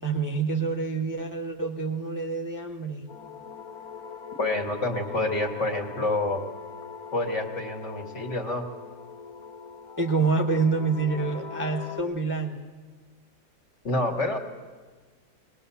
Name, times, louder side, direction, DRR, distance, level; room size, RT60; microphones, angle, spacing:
voice 1, 0.0-3.1 10.0-12.7, right 4 dB, 15° right, 2 dB, 0.9 m, -27 dB
sound 1, 3.1-12.0, left 6 dB, 75° left, 1.4 m, -41 dB
voice 2, 4.4-6.4 7.1-8.6 13.8-14.4, left 2 dB, 50° left, 2 dB, 2.2 m, -27 dB
20.5 x 19.5 x 7.0 m, 1.4 s
omnidirectional pair, 1.6 m